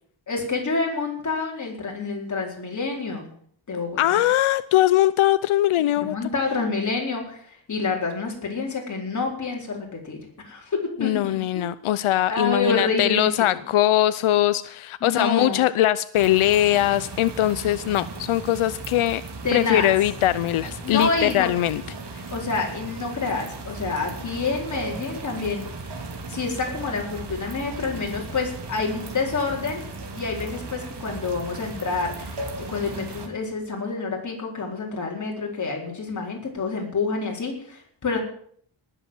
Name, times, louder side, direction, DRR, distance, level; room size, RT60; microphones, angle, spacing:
voice 1, 0.3-3.3 3.7-4.3 6.0-10.2 10.4-11.8 12.3-13.6 15.0-15.6 19.4-19.9 20.8-21.5 22.3-25.6 26.3-29.8 30.1-38.2, left 4 dB, 35° left, 0 dB, 4.3 m, -28 dB
voice 2, 4.0-6.1 11.0-19.2 19.5-21.8, left 13 dB, 90° left, 15 dB, 0.7 m, -21 dB
sound 1, 16.1-33.3, right 3 dB, 55° right, 2.6 m, -36 dB
19.0 x 7.8 x 7.7 m, 0.62 s
wide cardioid pair, 160°, 48 cm